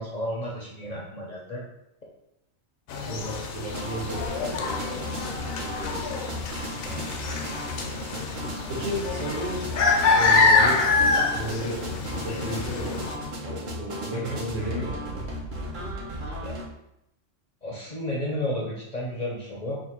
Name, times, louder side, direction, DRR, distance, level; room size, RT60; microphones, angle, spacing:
voice 1, 0.0-1.6 6.8-7.0 14.1-14.8 16.0-16.6 17.6-19.8, left 1 dB, 45° left, -4 dB, 0.5 m, -33 dB
sound 1, 2.9-13.2, left 4 dB, 85° left, 1.0 m, -26 dB
voice 2, 3.0-6.2 8.7-9.7 10.1-13.0 13.4-15.2, right 1 dB, 70° right, -4 dB, 1.5 m, -34 dB
sound 2, 3.7-16.7, equal, 50° right, 0.7 m, -35 dB
3.2 x 2.5 x 4.2 m, 0.84 s
omnidirectional pair, 1.4 m